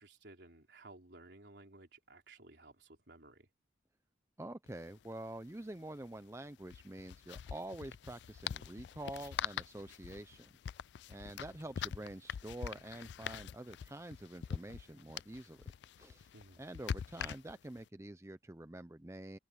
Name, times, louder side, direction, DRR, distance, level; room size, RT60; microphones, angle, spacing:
voice 1, 0.0-3.5 16.3-16.6, right 2 dB, 65° right, 3.7 m, -57 dB
voice 2, 4.4-10.6 11.1-15.7 16.0-16.3 16.6-19.4, right 1 dB, 15° right, 0.5 m, -47 dB
sound 1, 4.7-4.8 5.0-5.1 6.6-17.8, left 8 dB, 65° left, 0.3 m, -44 dB
head